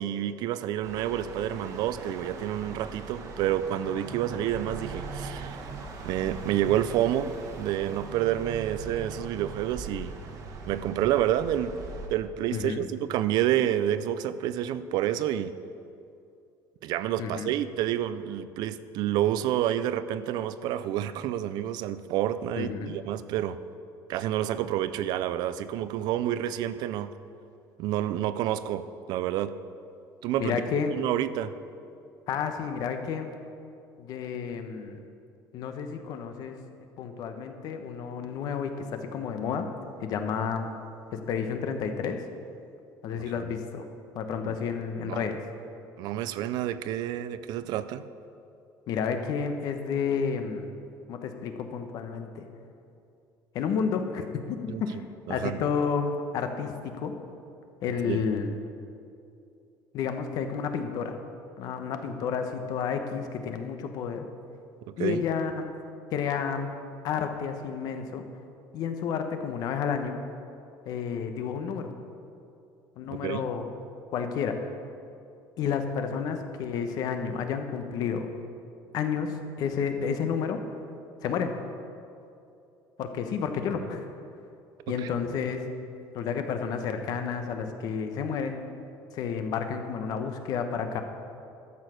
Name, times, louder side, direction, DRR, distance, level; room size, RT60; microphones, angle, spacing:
voice 1, 0.0-5.6 6.0-10.1 10.7-11.7 12.1-15.5 16.8-23.6 24.1-27.1 27.8-29.5 30.2-30.6 30.9-31.5 43.1-43.2 44.4-44.6 45.0-45.4 46.0-48.0 54.7-54.8 55.3-55.6 58.0-58.2 64.9-65.2 73.1-73.4 83.7-83.9 85.0-85.1, right 11 dB, 65° right, 14 dB, 0.4 m, -29 dB
sound 1, 0.8-12.1, right 4 dB, 50° right, 1.3 m, -40 dB
voice 2, 12.5-12.8 17.2-17.5 22.6-22.9 30.4-30.9 32.3-33.3 34.0-35.0 35.5-36.6 37.0-39.7 40.0-40.7 41.1-42.2 43.0-43.9 44.1-45.4 48.9-50.6 51.1-52.5 53.5-55.0 55.3-57.1 57.8-58.5 59.9-61.2 61.6-64.3 65.0-65.7 66.1-66.7 67.0-68.2 68.7-70.2 70.9-71.9 73.0-73.7 74.1-74.6 75.6-78.3 78.9-80.6 81.2-81.6 83.0-84.1 84.9-85.7 86.1-88.6 89.1-91.0, left 6 dB, 60° left, 7 dB, 1.0 m, -31 dB
12.0 x 6.9 x 6.3 m, 2.6 s
cardioid pair, 160°, 8 cm